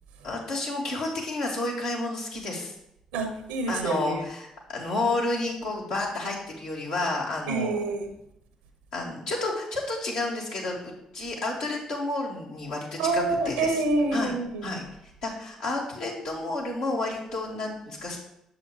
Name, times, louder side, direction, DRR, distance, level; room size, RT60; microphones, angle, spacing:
voice 1, 0.2-2.7 3.7-7.8 8.9-13.8 14.1-14.3 14.6-14.8 15.2-18.2, left 2 dB, 80° left, -6 dB, 2.2 m, -31 dB
voice 2, 3.1-4.2 7.5-8.1 13.0-14.6, right 3 dB, 80° right, 6 dB, 1.0 m, -27 dB
8.7 x 7.3 x 3.3 m, 0.79 s
hypercardioid pair, 40°, 3 cm